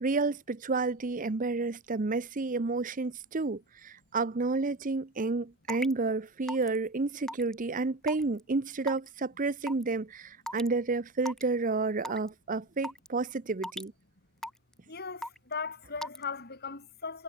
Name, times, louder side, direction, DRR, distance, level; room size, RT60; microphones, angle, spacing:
voice 1, 0.0-13.9, right 3 dB, 40° right, 0.7 m, -30 dB
Raindrop / Water tap faucet / Drip, 5.7-5.9 6.5-6.8 7.3-7.5 8.1-8.4 8.9-9.1 9.7-9.8 10.5-10.7 11.2-11.4 12.0-12.3 12.8-13.1 13.6-13.9 14.4-14.7 15.2-15.5 16.0-16.2, left 1 dB, ahead, 1.2 m, -37 dB
voice 2, 14.9-17.2, left 5 dB, 50° left, 3.8 m, -38 dB
head